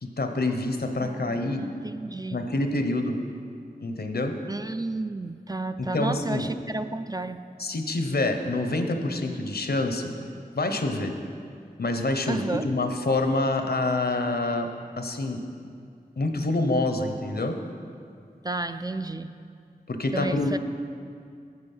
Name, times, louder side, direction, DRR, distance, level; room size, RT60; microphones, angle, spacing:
voice 1, 0.0-1.6 2.3-3.2 3.8-4.4 5.8-6.5 7.6-10.1 10.5-11.2 11.8-14.7 15.0-15.4 16.2-17.6 19.9-20.6, left 2 dB, 75° left, 6 dB, 0.8 m, -26 dB
voice 2, 1.0-2.5 4.5-7.4 12.3-12.7 18.4-19.3 20.1-20.6, right 2 dB, 25° right, 9 dB, 0.3 m, -32 dB
9.5 x 7.9 x 5.5 m, 2.3 s
wide cardioid pair, 60°, 16 cm